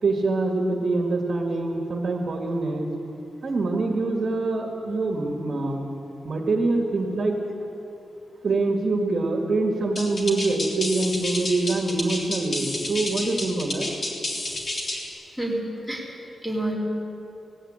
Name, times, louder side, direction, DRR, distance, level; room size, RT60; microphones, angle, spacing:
voice 1, 0.0-2.9 3.4-5.9 6.3-7.4 8.4-13.9, right 3 dB, 40° right, 2 dB, 1.9 m, -25 dB
sound 1, 10.0-15.1, left 2 dB, 35° left, 3.3 m, -30 dB
voice 2, 15.9-16.7, right 1 dB, 10° left, -3 dB, 3.8 m, -29 dB
18.0 x 17.5 x 8.9 m, 3.0 s
wide cardioid pair, 180°, 0 cm